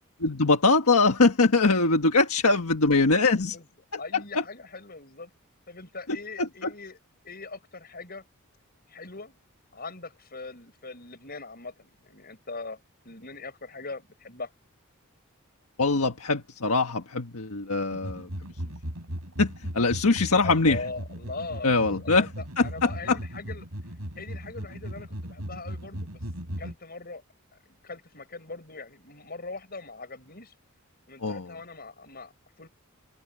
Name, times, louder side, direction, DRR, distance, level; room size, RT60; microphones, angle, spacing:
voice 1, 0.2-3.5 6.4-6.5 15.8-18.3 19.4-20.8 21.6-22.2 22.6-23.2 31.2-31.5, left 3 dB, 85° left, 1.5 m, -22 dB
voice 2, 3.3-3.7 4.0-5.3 5.7-7.0 7.2-8.2 8.9-9.4 9.7-14.5 20.4-23.7 24.2-26.2 26.6-27.2 27.7-30.5 31.1-32.7, left 3 dB, 45° left, 7.0 m, -41 dB
sound 1, 17.9-26.7, equal, 85° right, 7.4 m, -37 dB
open air
head